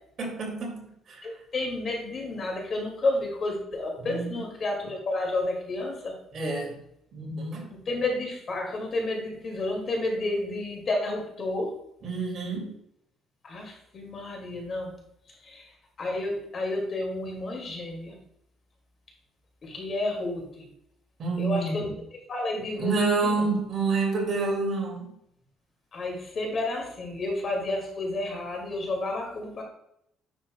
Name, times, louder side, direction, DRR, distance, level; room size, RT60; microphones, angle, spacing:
voice 1, 0.2-0.8 1.1-1.2 4.0-4.3 6.3-6.7 7.1-7.7 12.0-12.7 21.2-21.8 22.8-25.1, right 3 dB, 45° right, 0 dB, 2.4 m, -28 dB
voice 2, 1.2-6.1 7.7-11.8 13.4-14.9 15.4-15.7 16.0-18.2 19.6-20.7 21.4-21.9 22.3-22.9 23.2-23.5 25.9-29.6, left 2 dB, 40° left, 0 dB, 2.2 m, -31 dB
9.9 x 6.2 x 2.3 m, 0.74 s
cardioid pair, 145°, 0 cm